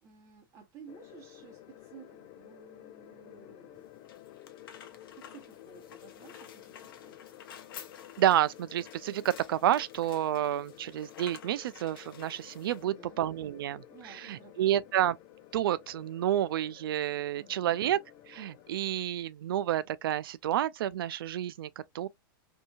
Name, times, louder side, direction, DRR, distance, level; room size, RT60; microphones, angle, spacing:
voice 1, 0.0-3.9 4.9-7.2 12.8-13.2 13.9-14.9 17.4-17.8, right 6 dB, 25° right, 1.2 m, -54 dB
sound 1, 0.9-19.0, left 13 dB, 35° left, 0.4 m, -52 dB
sound 2, 3.8-12.9, left 8 dB, 70° left, 0.7 m, -52 dB
voice 2, 8.2-15.2 15.5-18.0 18.3-22.1, right 12 dB, 75° right, 0.4 m, -30 dB
2.7 x 2.7 x 2.3 m
supercardioid pair, 150°, 12 cm